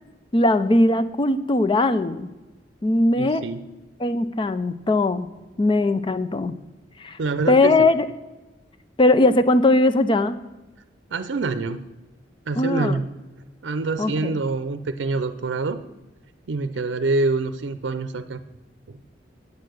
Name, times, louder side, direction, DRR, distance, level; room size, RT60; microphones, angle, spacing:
voice 1, 0.3-2.3 2.8-3.5 4.0-5.3 5.6-6.5 7.0-7.2 7.5-8.1 9.0-10.4 12.5-13.0 14.0-14.4, left 2 dB, 25° left, 12 dB, 0.5 m, -19 dB
voice 2, 3.1-3.6 7.2-7.9 11.1-11.9 12.5-13.1 13.6-15.8 16.5-18.4 18.9-19.0, right 3 dB, 90° right, 11 dB, 0.5 m, -26 dB
8.6 x 8.4 x 6.3 m, 1.1 s
head